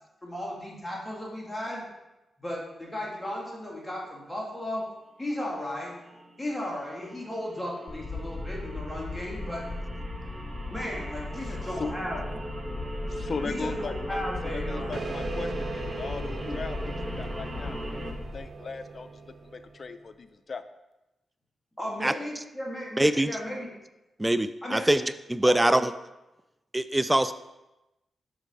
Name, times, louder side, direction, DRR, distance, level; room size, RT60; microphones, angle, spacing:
voice 1, 0.2-1.9 2.4-4.9 5.2-6.0 6.4-9.6 10.7-12.3 13.4-14.9 16.4-16.6 21.8-23.7 24.6-24.9 25.4-25.8, left 1 dB, 15° left, -3 dB, 2.6 m, -35 dB
sound 1, 3.0-3.4 5.2-5.3 5.6-18.1, right 1 dB, 30° right, 1.4 m, -40 dB
sound 2, 7.9-18.4, left 2 dB, 30° left, 1.8 m, -37 dB
voice 2, 13.1-20.6, left 4 dB, 55° left, 11 dB, 0.5 m, -38 dB
sound 3, 14.9-20.0, right 4 dB, 60° right, 0.7 m, -40 dB
voice 3, 23.0-23.3 24.2-25.0 25.3-25.9 26.7-27.3, right 1 dB, 15° right, 13 dB, 0.3 m, -23 dB
6.5 x 4.9 x 4.7 m, 0.98 s
supercardioid pair, 50°, 0 cm